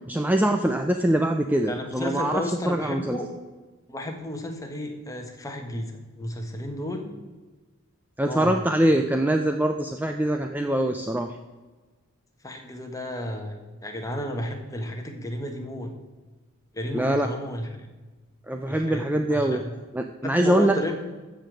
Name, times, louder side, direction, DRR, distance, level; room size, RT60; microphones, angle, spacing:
voice 1, 0.1-3.2 8.2-11.3 16.9-17.3 18.5-19.6 19.9-20.7, right 1 dB, 10° right, 5 dB, 0.5 m, -23 dB
voice 2, 1.7-3.3 3.9-7.1 8.2-8.6 12.4-15.9 16.7-17.9 18.7-19.8 20.2-20.9, left 1 dB, 15° left, 3 dB, 1.5 m, -33 dB
14.0 x 5.2 x 7.6 m, 1.3 s
head